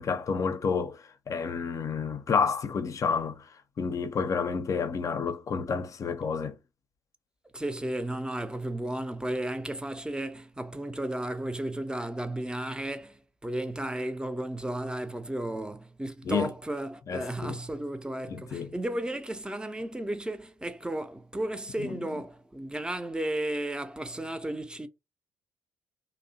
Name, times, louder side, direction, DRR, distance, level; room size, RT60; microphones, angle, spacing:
voice 1, 0.0-3.4 3.8-6.6 16.2-16.5 17.1-17.6 18.3-18.7 21.8-22.0, left 5 dB, 45° left, 0.5 m, -30 dB
voice 2, 7.5-24.9, right 1 dB, 10° right, 0.5 m, -34 dB
2.7 x 2.0 x 2.6 m
hypercardioid pair, 45°, 8 cm